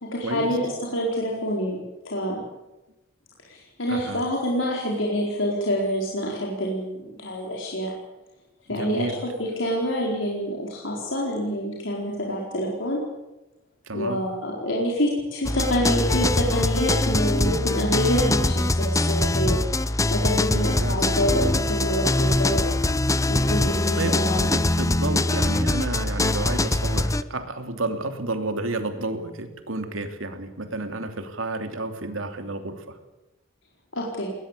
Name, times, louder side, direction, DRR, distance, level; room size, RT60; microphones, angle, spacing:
voice 1, 0.0-1.8 2.0-2.4 3.4-7.9 8.7-13.0 13.9-19.6 20.1-22.6 23.3-24.5 33.9-34.3, equal, 70° left, -2 dB, 4.5 m, -27 dB
voice 2, 3.9-4.2 8.7-9.2 13.9-14.2 20.5-21.1 24.0-24.2 24.4-33.0, right 2 dB, 90° right, 7 dB, 3.0 m, -31 dB
sound 1, 15.4-27.2, left 2 dB, 15° left, 0.7 m, -23 dB
21.0 x 20.0 x 8.4 m, 1.0 s
head